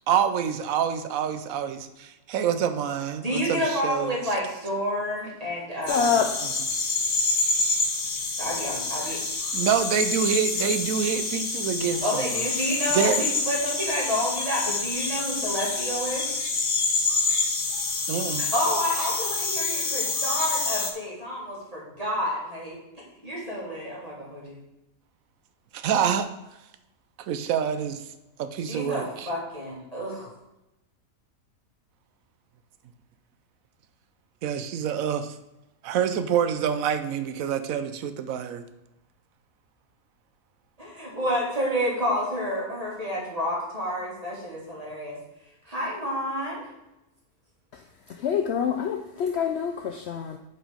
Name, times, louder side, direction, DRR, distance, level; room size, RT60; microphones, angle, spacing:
voice 1, 0.1-4.1 9.5-12.3 12.9-13.3 18.1-18.5 25.7-26.3 27.3-28.0 28.4-29.3 34.4-35.3 35.8-38.6, right 8 dB, 70° right, 1.0 m, -26 dB
voice 2, 3.2-6.2 8.4-9.2 12.0-16.2 18.4-22.8 23.2-24.6 28.7-30.3 40.8-45.2 45.6-46.6, equal, 25° right, 2.3 m, -29 dB
voice 3, 5.9-6.4 48.2-50.4, left 7 dB, 80° left, 0.5 m, -26 dB
sound 1, 5.9-20.9, left 3 dB, 35° left, 0.6 m, -27 dB
7.4 x 4.7 x 5.1 m
omnidirectional pair, 1.6 m